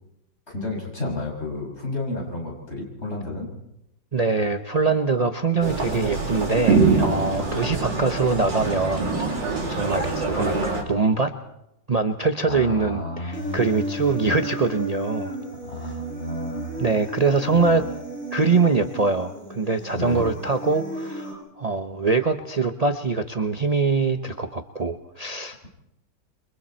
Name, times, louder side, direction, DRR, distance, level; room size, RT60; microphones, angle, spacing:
voice 1, 0.5-3.5 7.5-7.6 12.5-14.4 15.6-16.9 17.8-17.9 19.9-20.3, left 2 dB, 30° left, -1 dB, 6.8 m, -32 dB
voice 2, 4.1-11.3 11.9-15.4 16.8-17.9 18.3-25.7, right 4 dB, 55° right, 6 dB, 0.4 m, -23 dB
sound 1, 5.6-10.8, right 4 dB, 70° right, 4.3 m, -24 dB
Human voice, 13.3-21.3, right 1 dB, 5° left, 7.3 m, -34 dB
28.5 x 24.0 x 4.4 m, 0.83 s
omnidirectional pair, 2.1 m